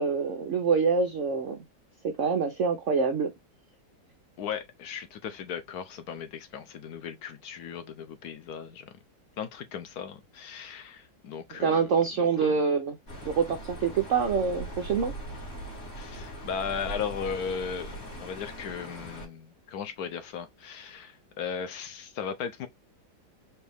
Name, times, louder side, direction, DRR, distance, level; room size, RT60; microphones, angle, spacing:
voice 1, 0.0-1.6 2.0-3.3 11.6-12.9 13.2-15.1, right 5 dB, 80° right, 0.6 m, -26 dB
voice 2, 4.4-8.9 9.4-11.9 12.2-12.6 16.0-22.7, left 7 dB, 70° left, 0.9 m, -37 dB
sound 1, 13.1-19.3, right 1 dB, 35° left, 2.1 m, -40 dB
4.5 x 2.6 x 3.3 m
omnidirectional pair, 2.1 m